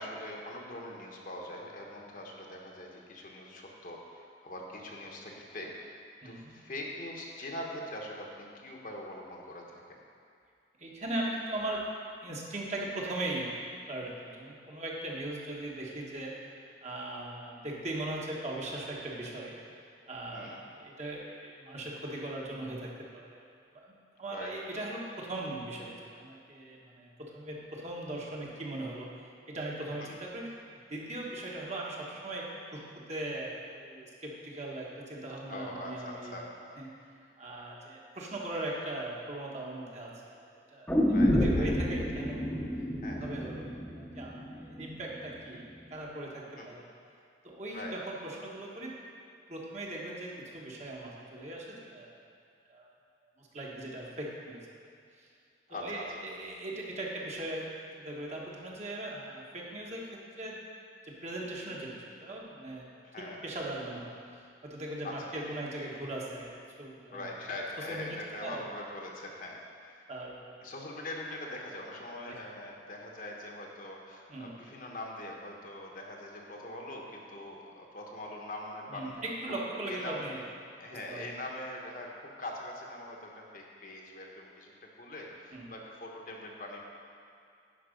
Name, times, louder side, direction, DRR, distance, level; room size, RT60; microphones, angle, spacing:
voice 1, 0.0-6.0 6.2-9.8 20.3-20.6 24.3-24.5 30.0-30.1 35.5-36.5 41.1-41.7 43.0-43.3 46.6-46.7 47.7-47.9 55.7-56.1 63.0-63.4 65.0-65.4 67.1-70.1 70.6-79.1 79.5-80.2 80.8-82.1 82.4-86.8, left 1 dB, 50° left, -1 dB, 1.1 m, -42 dB
voice 2, 6.2-6.5 10.8-11.8 12.2-13.5 13.9-16.3 16.8-19.6 20.1-23.4 23.7-29.1 29.5-30.5 30.9-32.8 33.1-36.4 36.8-36.9 37.4-40.1 40.4-40.9 41.3-42.6 43.1-43.7 43.9-45.6 45.9-46.9 47.4-48.9 49.5-52.2 52.7-52.9 53.4-54.8 55.7-57.7 57.9-60.6 61.0-62.9 63.2-64.2 64.6-66.5 66.8-67.2 67.9-68.7 70.1-70.7 72.3-72.4 74.3-74.5 78.9-80.4 80.8-81.3 85.5-85.7, right 1 dB, 40° right, -3 dB, 1.3 m, -39 dB
sound 1, 40.9-44.9 45.2-45.3, equal, 10° left, 0.9 m, -29 dB
10.0 x 5.4 x 5.2 m, 2.4 s
head